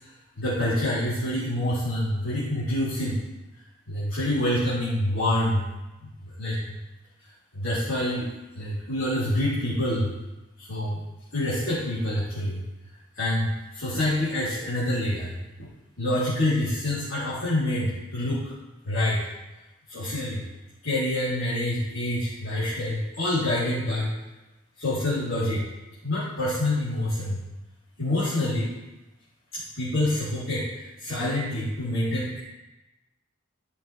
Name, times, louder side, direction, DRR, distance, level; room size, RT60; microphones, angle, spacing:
voice 1, 0.4-3.2 3.9-5.6 6.2-6.8 7.5-8.3 8.5-10.1 10.6-11.0 11.3-12.6 13.2-13.5 13.7-15.3 15.6-15.7 16.0-18.5 18.8-19.2 19.9-20.4 20.8-24.1 24.8-25.6 26.0-27.4 28.0-28.7 29.5-32.4, left 1 dB, 80° left, -13 dB, 3.7 m, -26 dB
14.5 x 6.5 x 3.5 m, 1.0 s
head